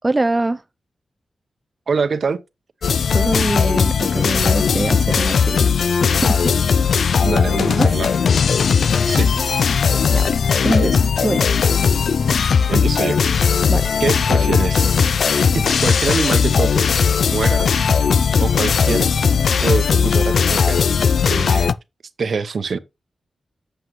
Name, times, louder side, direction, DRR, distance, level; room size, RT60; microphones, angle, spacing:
voice 1, 0.0-0.6 3.1-5.7 6.0-6.6 7.8-7.9 10.1-11.0 11.2-11.5 13.7-13.9, right 2 dB, 20° right, 0.3 m, -23 dB
voice 2, 1.9-2.4 7.2-8.1 9.1-9.4 12.7-13.2 14.0-14.9 15.5-17.7 18.4-19.1 19.6-20.9 21.3-21.7 22.2-22.8, right 5 dB, 60° right, 0.8 m, -24 dB
sound 1, 2.8-21.7, left 6 dB, 80° left, 0.3 m, -17 dB
7.9 x 7.7 x 3.1 m
wide cardioid pair, 130°, 0 cm